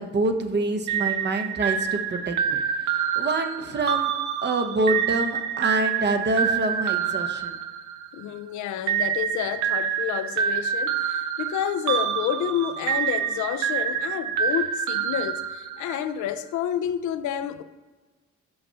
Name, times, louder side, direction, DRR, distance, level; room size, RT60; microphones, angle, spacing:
voice 1, 0.0-2.6 3.2-4.1 4.4-7.6, right 2 dB, 35° right, 0.8 m, -26 dB
sound 1, 0.9-8.3 8.9-16.1, right 8 dB, 75° right, 0.6 m, -27 dB
voice 2, 8.1-17.6, left 10 dB, 75° left, 0.5 m, -29 dB
5.6 x 5.3 x 5.5 m
cardioid pair, 90°, 30 cm